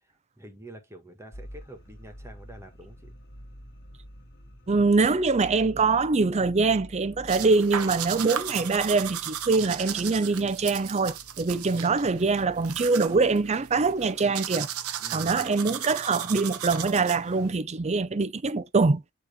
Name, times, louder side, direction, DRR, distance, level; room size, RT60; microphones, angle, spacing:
voice 1, 0.4-3.1 15.0-15.5, right 1 dB, 10° right, 1.5 m, -47 dB
sound 1, 1.3-14.2, equal, 55° left, 2.0 m, -49 dB
voice 2, 4.7-14.7 15.1-19.0, right 4 dB, 30° right, 0.5 m, -24 dB
sound 2, 7.3-17.5, right 9 dB, 85° right, 0.8 m, -35 dB
8.9 x 3.1 x 3.4 m
head